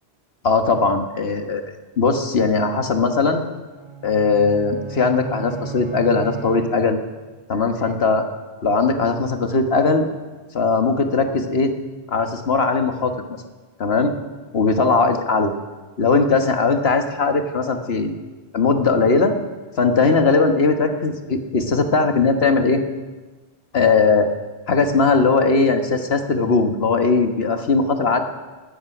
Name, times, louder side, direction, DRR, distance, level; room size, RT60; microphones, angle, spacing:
voice 1, 0.4-1.6 2.0-3.4 4.0-7.0 7.5-8.3 8.6-10.1 10.5-11.7 12.1-13.1 13.8-14.1 14.5-15.5 16.0-18.1 18.5-19.3 19.8-22.8 23.7-24.3 24.7-28.2, left 4 dB, 75° left, 6 dB, 1.6 m, -19 dB
sound 1, 3.7-7.3, right 8 dB, 30° right, 0.8 m, -35 dB
17.5 x 11.0 x 6.0 m, 1.3 s
omnidirectional pair, 1.1 m